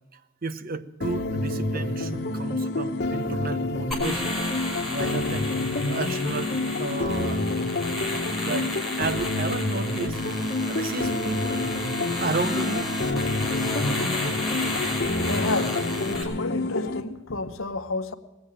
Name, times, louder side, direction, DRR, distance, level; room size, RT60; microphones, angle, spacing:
voice 1, 0.1-4.3 4.8-5.5 5.9-7.5 8.4-10.2 10.7-11.7 12.2-12.9, right 3 dB, 45° right, 0.7 m, -32 dB
sound 1, 1.0-17.0, left 2 dB, 50° left, 1.2 m, -28 dB
sound 2, 3.9-16.2, left 2 dB, ahead, 2.9 m, -32 dB
voice 2, 15.2-18.1, left 3 dB, 75° left, 0.9 m, -31 dB
18.5 x 7.9 x 9.0 m
head